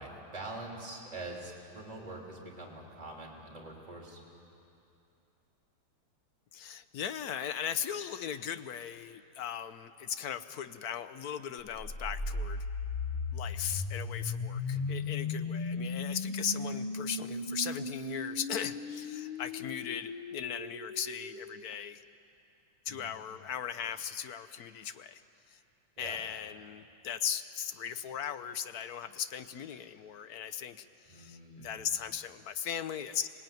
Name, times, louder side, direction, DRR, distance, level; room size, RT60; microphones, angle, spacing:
voice 1, 0.0-4.2 14.7-15.0 22.9-23.1 26.0-26.2 31.1-31.8, right 2 dB, 20° right, -1 dB, 3.3 m, -44 dB
voice 2, 6.5-12.6 13.3-22.0 22.9-25.2 25.5-25.6 26.0-33.3, left 8 dB, 65° left, 11 dB, 1.0 m, -38 dB
sound 1, 11.7-21.6, left 3 dB, 50° left, 0.5 m, -37 dB
26.0 x 19.0 x 9.2 m, 2.7 s
omnidirectional pair, 2.2 m